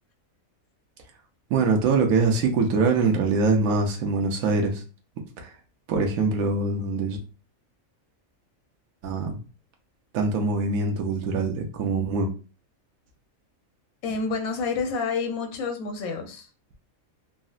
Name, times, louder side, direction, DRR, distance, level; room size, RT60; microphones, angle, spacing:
voice 1, 1.5-4.8 5.4-5.5 5.9-7.2 9.0-9.4 10.1-12.3, right 4 dB, 80° right, 2 dB, 1.1 m, -23 dB
voice 2, 14.0-16.5, left 4 dB, 85° left, 5 dB, 1.1 m, -29 dB
3.8 x 2.0 x 2.3 m, 0.34 s
omnidirectional pair, 1.4 m